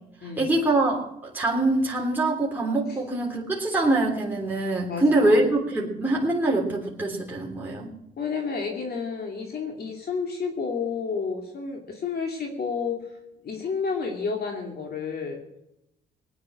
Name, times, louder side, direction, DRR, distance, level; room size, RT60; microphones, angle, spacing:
voice 1, 0.2-7.9, right 2 dB, 10° right, -3 dB, 3.4 m, -24 dB
voice 2, 4.9-5.4 8.2-13.0 13.4-15.4, left 5 dB, 50° left, 2 dB, 2.7 m, -30 dB
19.0 x 10.0 x 6.3 m, 0.86 s
cardioid pair, 90°, 20 cm